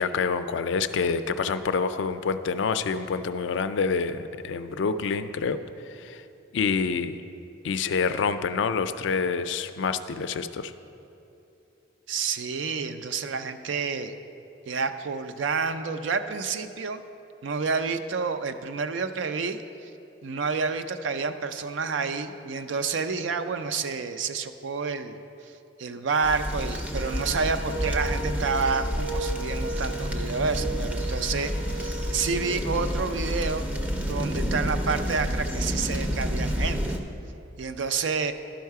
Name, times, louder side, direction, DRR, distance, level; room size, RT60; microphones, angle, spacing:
voice 1, 0.0-5.6 5.9-6.2 6.5-7.2 7.6-10.7, left 5 dB, 70° left, 11 dB, 0.4 m, -27 dB
voice 2, 12.1-14.1 14.7-17.0 17.4-19.6 20.2-25.5 25.8-33.7 34.0-36.8 37.6-38.3, right 5 dB, 70° right, 9 dB, 0.4 m, -29 dB
sound 1, 26.2-37.0, equal, 10° right, 0.5 m, -29 dB
Wind instrument woodwind instrument, 26.9-32.1, right 3 dB, 90° right, 1.5 m, -36 dB
11.5 x 5.6 x 4.7 m, 2.8 s
head